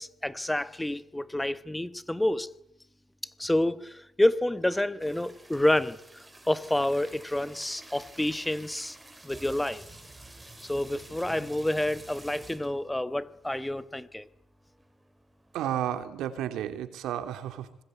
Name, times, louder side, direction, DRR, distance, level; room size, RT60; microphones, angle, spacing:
voice 1, 0.0-2.5 3.4-6.0 6.5-9.0 9.2-9.8 10.6-14.3, left 1 dB, 10° left, 1.4 m, -28 dB
sound 1, 5.0-12.8 13.4-13.5 13.7-13.9 14.4-15.7, right 2 dB, 15° right, 6.3 m, -49 dB
voice 2, 15.5-17.8, right 11 dB, 85° right, 3.1 m, -32 dB
25.5 x 21.0 x 9.4 m
cardioid pair, 90°, 0 cm